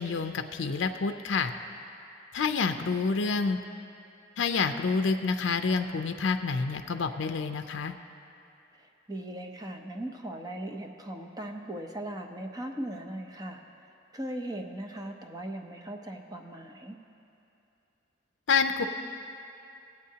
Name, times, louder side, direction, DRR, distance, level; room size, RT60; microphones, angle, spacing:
voice 1, 0.0-1.5 2.3-3.6 4.4-7.9 18.5-18.8, left 4 dB, 75° left, 7 dB, 0.4 m, -28 dB
voice 2, 8.8-13.6 14.1-17.0, right 1 dB, 20° right, 3 dB, 0.6 m, -38 dB
20.0 x 8.3 x 2.8 m, 2.7 s
head